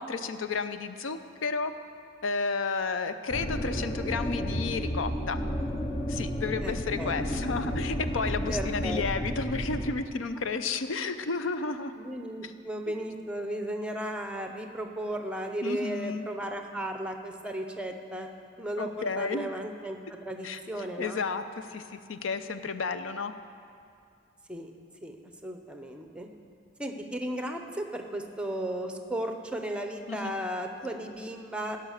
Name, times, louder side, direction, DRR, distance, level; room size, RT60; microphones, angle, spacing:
voice 1, 0.0-1.7 2.2-5.4 6.1-11.9 12.4-12.5 15.6-16.3 18.8-19.5 20.4-23.3 30.1-30.5, left 4 dB, 85° left, 10 dB, 0.6 m, -32 dB
sound 1, 3.3-9.9, equal, 30° left, 0.7 m, -32 dB
voice 2, 6.6-7.1 8.5-9.0 12.0-18.3 18.6-18.9 19.2-21.3 24.5-24.7 25.0-25.2 25.4-26.3 26.8-31.8, right 1 dB, 5° right, 5 dB, 0.7 m, -35 dB
16.5 x 5.6 x 6.5 m, 2.4 s
head